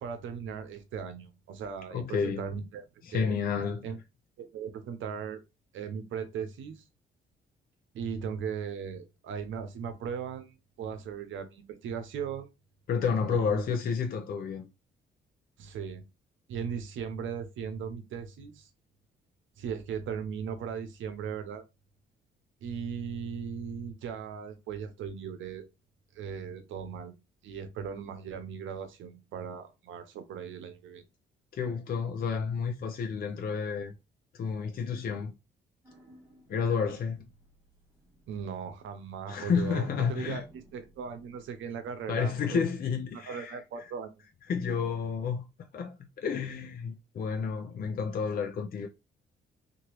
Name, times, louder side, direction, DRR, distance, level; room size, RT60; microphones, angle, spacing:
voice 1, 0.0-2.9 3.1-3.4 3.8-4.0 4.4-5.4 5.7-6.8 7.9-12.5 13.3-13.6 15.6-16.0 16.5-18.7 19.6-21.6 22.6-25.6 26.1-27.1 27.4-31.0 38.3-42.6 43.1-44.3, right 7 dB, 75° right, 0.7 m, -38 dB
voice 2, 1.9-2.5 3.0-3.9 12.9-14.7 31.5-33.9 34.3-35.3 36.5-37.2 39.3-40.4 42.1-43.9 44.5-45.4 45.7-48.9, left 6 dB, 50° left, 0.5 m, -31 dB
sound 1, 35.8-39.3 39.6-42.3, equal, 10° right, 1.5 m, -53 dB
2.9 x 2.6 x 3.0 m
cardioid pair, 90°, 20 cm